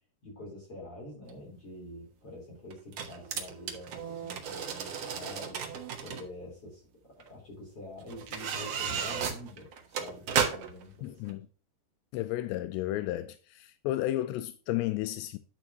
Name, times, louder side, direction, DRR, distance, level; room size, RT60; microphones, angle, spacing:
voice 1, 0.2-5.7 6.0-9.7 10.0-11.4, left 1 dB, 35° left, 4.6 m, -46 dB
sound 1, 1.3-1.4 2.7-6.2 7.2-7.3 8.1-10.8 11.3-11.4, right 7 dB, 65° right, 1.6 m, -34 dB
voice 2, 11.0-11.5 12.1-15.4, left 15 dB, 85° left, 2.8 m, -33 dB
10.5 x 7.2 x 2.9 m
omnidirectional pair, 4.9 m